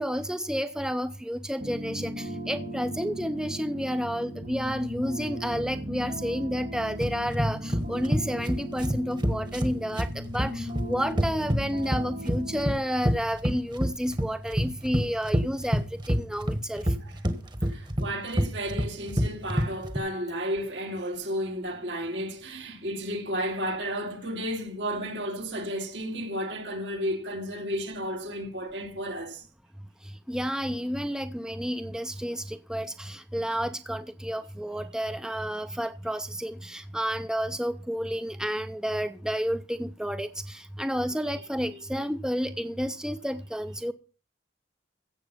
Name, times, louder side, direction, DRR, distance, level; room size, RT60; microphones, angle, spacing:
voice 1, 0.0-16.9 30.3-43.9, equal, 5° right, 0.6 m, -31 dB
sound 1, 1.6-12.8, equal, 45° right, 2.0 m, -37 dB
sound 2, 7.0-20.0, equal, 25° right, 1.3 m, -27 dB
voice 2, 17.6-29.5 41.7-41.8, equal, 75° right, 2.8 m, -33 dB
15.5 x 7.6 x 5.5 m
head